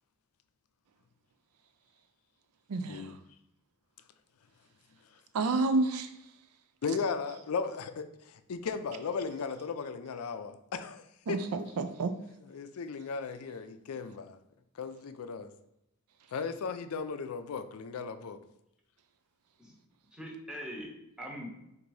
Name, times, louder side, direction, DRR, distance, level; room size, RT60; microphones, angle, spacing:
voice 1, 2.7-3.1 5.3-6.1 11.3-12.1, right 3 dB, 85° right, 9 dB, 0.4 m, -29 dB
voice 2, 6.8-11.4 12.5-14.4 14.8-15.5 16.3-18.4, left 5 dB, 70° left, 11 dB, 0.4 m, -36 dB
voice 3, 20.1-21.5, equal, 5° right, -1 dB, 0.8 m, -42 dB
3.9 x 2.6 x 4.7 m, 0.83 s
head